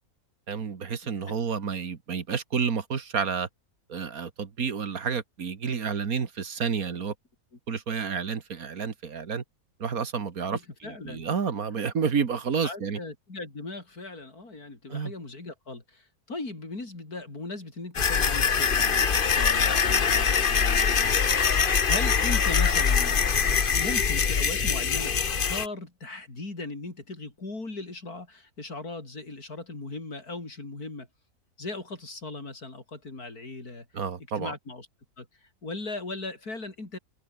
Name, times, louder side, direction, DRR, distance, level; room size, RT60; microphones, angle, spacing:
voice 1, 0.5-3.5 3.9-7.1 7.7-9.4 9.8-13.0 14.9-15.1 33.9-34.5, right 6 dB, 65° right, 2.2 m, -30 dB
voice 2, 10.5-11.2 12.6-31.1 31.6-33.9 34.4-34.9 35.2-37.0, left 3 dB, 75° left, 5.6 m, -38 dB
sound 1, 17.9-25.7, left 6 dB, 40° left, 1.1 m, -23 dB
omnidirectional pair, 1.6 m